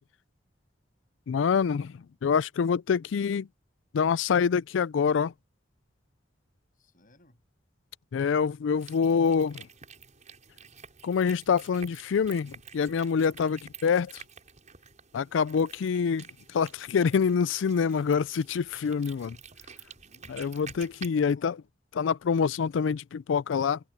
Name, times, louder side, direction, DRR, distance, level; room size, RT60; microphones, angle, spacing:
voice 1, 1.3-1.9 2.2-3.5 3.9-5.3 8.1-9.7 11.0-14.1 15.1-16.2 16.5-19.4 20.3-21.5 22.0-23.8, left 6 dB, 70° left, 0.4 m, -26 dB
voice 2, 6.7-7.4 19.9-21.6, left 1 dB, 45° left, 7.4 m, -60 dB
sound 1, 8.8-21.1, right 6 dB, 40° right, 6.5 m, -50 dB
head